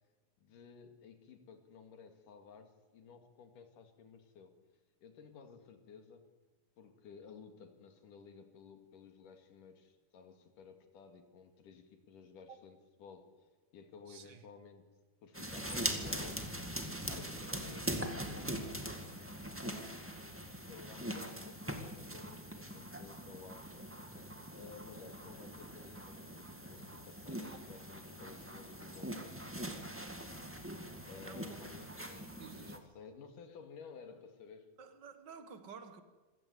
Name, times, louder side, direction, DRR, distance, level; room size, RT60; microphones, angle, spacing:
voice 1, 0.4-4.5 5.0-6.3 6.8-13.3 13.7-14.8 15.2-16.5 17.0-18.5 19.6-20.2 20.5-23.8 24.5-29.7 31.0-31.9 32.6-34.7, left 5 dB, 85° left, 3.8 m, -55 dB
voice 2, 14.1-14.4 31.1-31.6 32.4-32.8 34.8-36.0, right 6 dB, 45° right, 1.6 m, -52 dB
sound 1, 15.3-32.8, right 1 dB, 5° right, 1.4 m, -42 dB
26.5 x 17.0 x 8.4 m
omnidirectional pair, 3.6 m